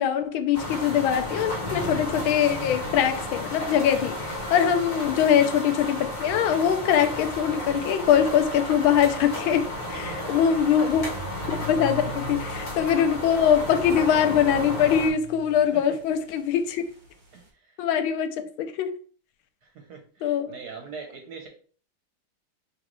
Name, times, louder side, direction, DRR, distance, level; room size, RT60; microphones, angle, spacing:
voice 1, 0.0-11.0 11.5-16.8 17.8-18.9 20.2-20.5, left 8 dB, 80° left, 1.3 m, -23 dB
sound 1, 0.5-15.1, left 1 dB, 45° left, 1.5 m, -33 dB
sound 2, 4.8-17.5, right 1 dB, 30° right, 1.0 m, -43 dB
voice 2, 9.8-10.4 15.7-16.0 17.3-17.8 19.6-21.5, right 5 dB, 65° right, 1.0 m, -42 dB
5.5 x 2.9 x 3.0 m
omnidirectional pair, 2.3 m